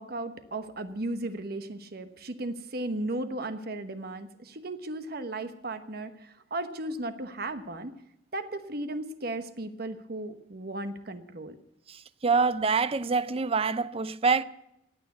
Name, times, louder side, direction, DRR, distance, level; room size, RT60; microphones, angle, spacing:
voice 1, 0.0-7.9 8.3-11.5, right 2 dB, 55° right, 1.1 m, -35 dB
voice 2, 12.2-14.4, right 4 dB, 30° right, 0.5 m, -25 dB
16.5 x 9.5 x 8.2 m
head